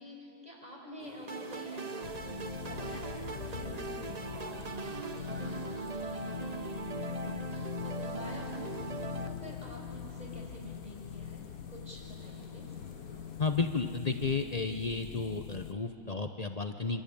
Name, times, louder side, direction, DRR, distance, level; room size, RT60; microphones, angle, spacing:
voice 1, 0.0-2.1 2.6-8.8 9.3-12.7, equal, 15° right, -1 dB, 6.1 m, -48 dB
sound 1, 1.0-13.6, left 1 dB, 20° left, 4.8 m, -56 dB
sound 2, 1.3-9.3, right 3 dB, 90° right, 0.3 m, -40 dB
sound 3, 2.0-15.7, left 9 dB, 60° left, 1.0 m, -43 dB
voice 2, 13.4-17.0, left 4 dB, 85° left, 6 dB, 0.3 m, -32 dB
26.5 x 25.5 x 8.8 m, 2.4 s
omnidirectional pair, 2.3 m